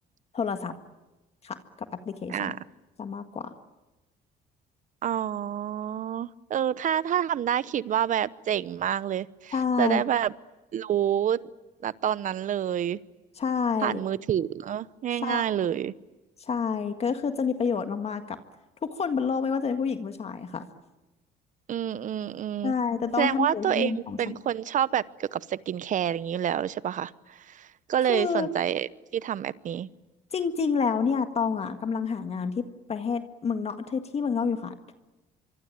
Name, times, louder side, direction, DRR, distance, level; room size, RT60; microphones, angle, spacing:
voice 1, 0.3-0.7 1.4-1.6 2.0-2.5 3.0-3.5 9.5-10.0 13.4-14.0 15.2-15.7 16.4-18.4 18.8-20.7 22.6-24.2 28.1-28.5 30.3-34.7, left 5 dB, 40° left, 8 dB, 1.7 m, -28 dB
voice 2, 5.0-10.3 10.7-11.4 11.8-13.0 13.8-15.9 21.7-22.7 23.2-29.9, right 10 dB, 50° right, 17 dB, 0.9 m, -28 dB
25.0 x 25.0 x 9.2 m, 1.1 s
cardioid pair, 110°, 17 cm